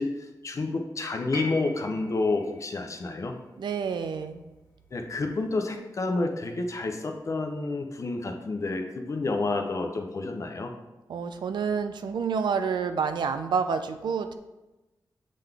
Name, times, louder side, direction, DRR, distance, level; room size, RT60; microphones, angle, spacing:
voice 1, 0.0-3.4 4.9-10.7, left 3 dB, 45° left, 5 dB, 0.6 m, -29 dB
sound 1, 1.3-5.5 6.7-6.8, left 1 dB, 85° left, 1.7 m, -43 dB
voice 2, 3.6-4.4 11.1-14.3, right 6 dB, 90° right, 9 dB, 0.4 m, -28 dB
7.4 x 3.8 x 3.4 m, 1.1 s
wide cardioid pair, 145°, 8 cm